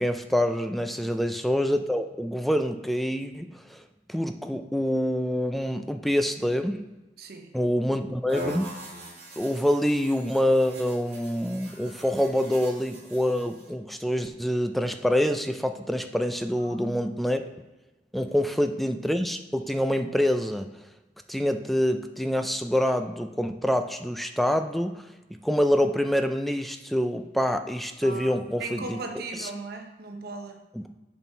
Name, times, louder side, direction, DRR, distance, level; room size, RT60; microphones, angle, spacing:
voice 1, 0.0-6.8 7.5-8.7 9.4-17.4 18.1-20.7 21.3-29.0 29.4-29.5 30.7-30.9, equal, ahead, 7 dB, 0.3 m, -26 dB
voice 2, 7.2-7.5 16.6-17.2 18.3-18.4 28.0-30.6, right 3 dB, 55° right, 4 dB, 0.8 m, -38 dB
sound 1, 8.3-13.7, right 1 dB, 35° right, 2.0 m, -42 dB
6.9 x 4.4 x 4.5 m, 1.1 s
head